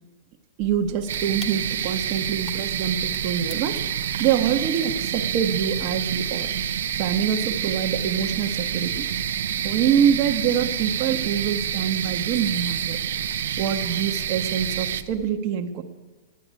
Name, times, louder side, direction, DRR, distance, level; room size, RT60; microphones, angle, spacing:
sound 1, 0.6-15.3, left 2 dB, 20° left, 1.1 m, -44 dB
voice 1, 0.6-3.8 4.2-6.5 7.0-9.1 9.5-13.0 13.6-15.8, right 8 dB, 45° right, 4 dB, 0.9 m, -25 dB
sound 2, 1.1-15.0, right 9 dB, 80° right, 0.6 m, -28 dB
10.5 x 9.2 x 9.4 m, 1.3 s
hypercardioid pair, 140°, 0 cm